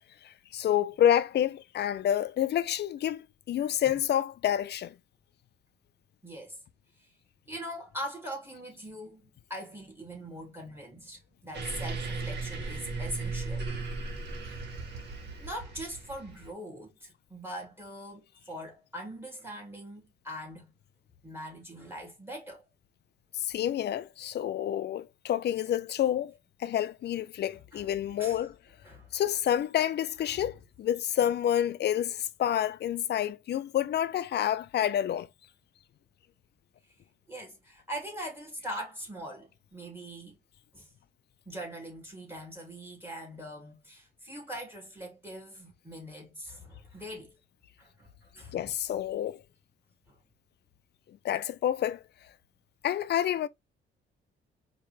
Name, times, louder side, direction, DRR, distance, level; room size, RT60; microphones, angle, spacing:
voice 1, 0.2-4.9 23.3-26.3 26.6-28.5 29.1-35.3 48.5-49.4 51.2-52.0 52.8-53.5, left 10 dB, 60° left, 0.5 m, -28 dB
voice 2, 6.2-6.6 6.9-7.1 7.5-13.7 14.4-14.6 15.4-20.7 21.2-22.6 27.7-27.9 28.2-28.4 28.8-29.2 30.2-30.5 36.9-37.0 37.3-40.4 40.7-40.9 41.5-47.4 47.8-48.7 50.1-50.2, equal, 10° right, 2.5 m, -42 dB
sound 1, 11.5-16.5, right 3 dB, 60° right, 1.8 m, -36 dB
4.5 x 2.9 x 3.1 m
cardioid pair, 90°, 20 cm